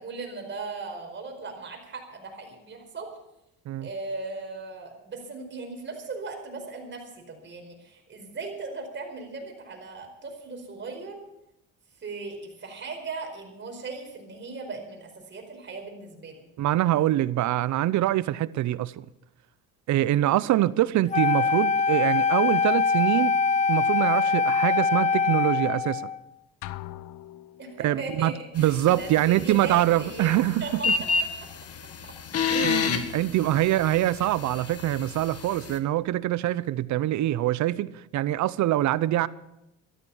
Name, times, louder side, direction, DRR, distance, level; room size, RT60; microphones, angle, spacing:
voice 1, 0.0-3.1 3.8-11.2 12.0-16.4 27.6-28.3 28.6-30.3 30.6-30.9 33.5-33.6, right 3 dB, 35° right, 4.7 m, -38 dB
voice 2, 16.6-19.1 19.9-23.3 23.7-26.0 27.8-30.9 32.5-39.3, right 14 dB, 60° right, 0.7 m, -24 dB
Wind instrument woodwind instrument, 21.1-26.2, left 5 dB, 25° left, 0.6 m, -23 dB
sound 1, 26.6-28.1, left 15 dB, 75° left, 0.8 m, -41 dB
sound 2, 28.6-35.8, left 5 dB, 50° left, 1.9 m, -31 dB
14.0 x 13.0 x 7.2 m
cardioid pair, 105°, 32 cm